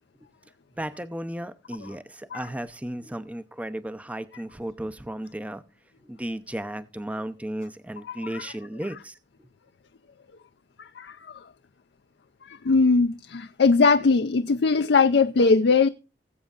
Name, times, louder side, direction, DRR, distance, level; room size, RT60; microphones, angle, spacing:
voice 1, 0.8-5.6 6.0-9.2, right 1 dB, 10° right, 0.5 m, -34 dB
voice 2, 8.1-8.5 10.8-11.2 12.5-15.9, left 4 dB, 65° left, 0.5 m, -21 dB
19.5 x 8.3 x 2.4 m
head